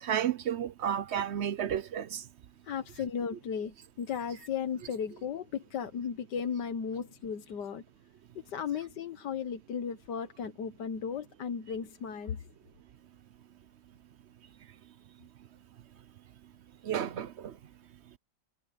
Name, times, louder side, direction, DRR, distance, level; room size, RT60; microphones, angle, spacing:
voice 1, 0.0-2.2 16.8-17.5, right 9 dB, 60° right, 0.7 m, -32 dB
voice 2, 2.6-7.8 8.5-12.5, left 7 dB, 75° left, 1.8 m, -35 dB
omnidirectional pair, 1.9 m